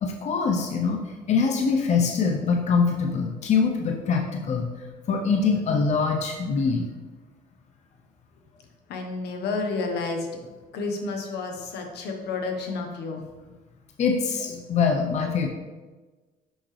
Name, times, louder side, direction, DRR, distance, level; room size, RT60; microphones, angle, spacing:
voice 1, 0.0-4.7 5.1-6.9 14.0-15.5, left 5 dB, 45° left, 2 dB, 0.7 m, -24 dB
voice 2, 8.9-10.3 10.7-13.2, left 3 dB, 75° left, 3 dB, 1.2 m, -30 dB
6.3 x 5.8 x 3.3 m, 1.3 s
cardioid pair, 110°, 17 cm